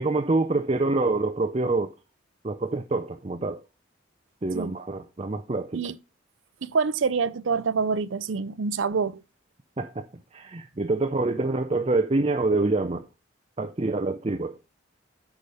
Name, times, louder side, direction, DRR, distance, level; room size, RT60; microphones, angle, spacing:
voice 1, 0.0-1.9 2.4-3.6 4.4-5.8 9.8-10.1 10.3-13.1 13.6-14.6, right 2 dB, 30° right, 0.6 m, -26 dB
voice 2, 6.6-9.2, right 5 dB, 75° right, 0.5 m, -26 dB
8.4 x 5.0 x 5.4 m
head